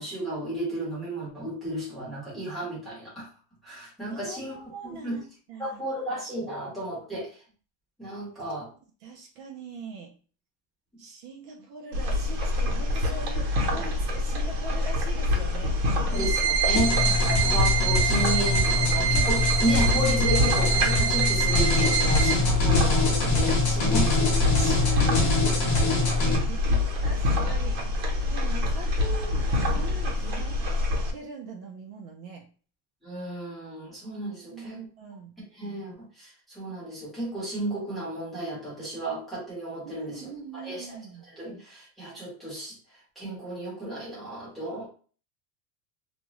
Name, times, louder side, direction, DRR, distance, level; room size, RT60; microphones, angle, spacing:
voice 1, 0.0-3.3 3.6-4.5 4.8-5.2 5.6-7.3 8.0-8.7 16.1-24.8 33.0-34.8 35.5-40.3 40.5-41.0 41.3-42.8 43.2-44.9, right 1 dB, ahead, -9 dB, 1.0 m, -33 dB
voice 2, 4.1-5.2 5.5-5.8 9.0-10.1 11.0-15.8 16.1-16.2 16.7-16.8 23.8-28.0 28.3-29.4 29.7-30.6 31.1-32.5 34.5-35.4 39.8-41.2, right 3 dB, 60° right, 1 dB, 0.8 m, -41 dB
sound 1, 11.9-31.1, left 2 dB, 80° right, 1.1 m, -26 dB
sound 2, 16.1-22.3, right 7 dB, 15° right, 0.4 m, -26 dB
sound 3, 16.8-26.4, left 3 dB, 35° left, 0.8 m, -25 dB
2.6 x 2.2 x 3.1 m, 0.39 s
cardioid pair, 170°, 48 cm